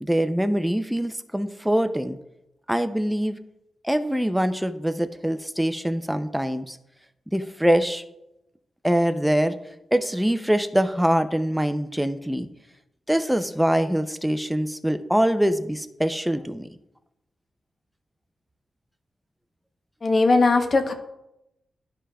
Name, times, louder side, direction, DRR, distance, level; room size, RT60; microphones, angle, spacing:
voice 1, 0.0-2.2 2.7-3.4 3.8-6.8 7.3-8.0 8.8-9.6 9.9-12.5 13.1-16.7, equal, 5° right, 9 dB, 0.4 m, -23 dB
voice 2, 20.0-20.9, left 3 dB, 45° left, 5 dB, 0.8 m, -19 dB
12.5 x 4.8 x 2.3 m, 0.89 s
wide cardioid pair, 105°, 0 cm